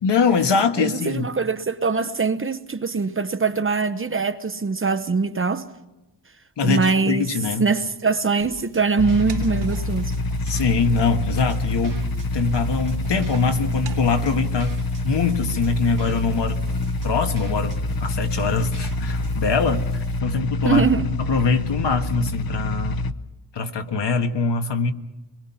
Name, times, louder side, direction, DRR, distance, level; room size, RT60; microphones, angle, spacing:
voice 1, 0.0-1.3 6.6-7.7 10.5-12.1 12.3-16.6 17.0-20.9 21.3-23.0 23.5-24.9, left 4 dB, 70° left, 1.5 m, -23 dB
voice 2, 0.8-5.7 6.6-7.3 7.6-10.1 20.6-21.0, right 4 dB, 30° right, 0.8 m, -22 dB
sound 1, 8.4-19.4, right 5 dB, 45° right, 2.1 m, -46 dB
sound 2, 8.6-20.2, right 6 dB, 75° right, 2.9 m, -48 dB
sound 3, 9.0-23.1, left 2 dB, 55° left, 0.8 m, -26 dB
26.0 x 21.5 x 5.7 m
wide cardioid pair, 165°, 43 cm